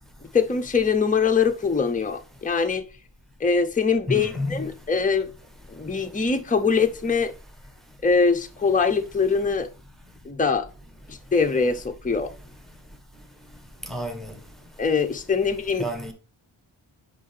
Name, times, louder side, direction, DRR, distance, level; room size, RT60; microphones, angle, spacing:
voice 1, 0.3-2.8 3.4-5.3 5.7-7.3 8.0-9.7 10.2-10.7 11.1-12.3 14.8-15.9, left 5 dB, 15° left, 0.7 m, -23 dB
voice 2, 4.1-4.6 13.9-14.3 15.8-16.1, left 1 dB, ahead, 1.4 m, -29 dB
6.5 x 5.2 x 3.4 m
wide cardioid pair, 65°, 50 cm